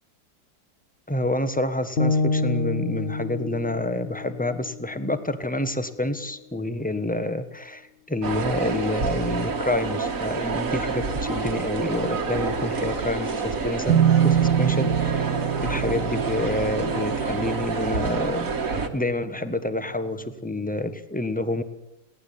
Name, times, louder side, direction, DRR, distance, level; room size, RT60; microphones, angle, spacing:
voice 1, 1.1-14.0 14.2-15.3 15.6-21.6, left 2 dB, 5° left, 10 dB, 1.1 m, -28 dB
sound 1, 2.0-6.1, left 3 dB, 35° left, 1.2 m, -28 dB
sound 2, 8.2-18.9, right 4 dB, 45° right, 2.2 m, -28 dB
sound 3, 13.9-19.5, right 9 dB, 65° right, 1.7 m, -25 dB
21.5 x 18.0 x 8.7 m, 0.88 s
omnidirectional pair, 2.1 m